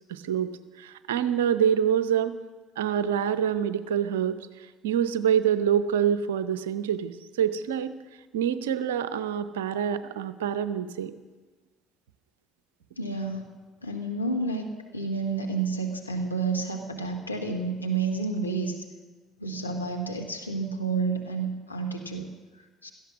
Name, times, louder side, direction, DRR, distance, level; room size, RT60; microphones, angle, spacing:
voice 1, 0.1-2.4 2.8-8.0 8.3-11.1, right 9 dB, 70° right, 13 dB, 0.7 m, -26 dB
voice 2, 13.0-13.5 13.8-18.8 19.4-22.9, right 4 dB, 90° left, 2 dB, 1.2 m, -30 dB
17.0 x 13.5 x 6.2 m, 1.3 s
figure-of-eight pair, 55°, 0 cm